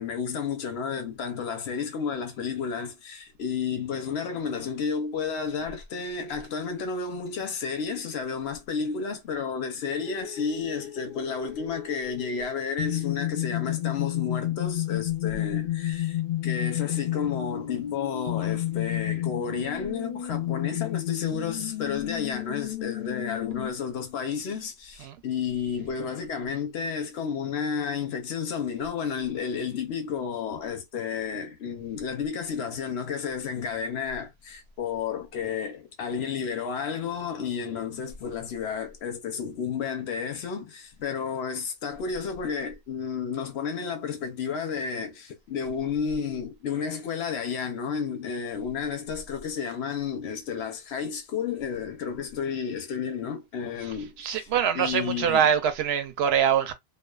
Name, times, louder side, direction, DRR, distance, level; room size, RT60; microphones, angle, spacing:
voice 1, 0.0-54.5 54.7-55.5, left 6 dB, 85° left, 1.0 m, -32 dB
sound 1, 9.8-23.7, left 14 dB, 55° left, 0.7 m, -31 dB
voice 2, 54.2-56.7, right 8 dB, 80° right, 0.8 m, -24 dB
2.4 x 2.4 x 2.2 m
omnidirectional pair, 1.0 m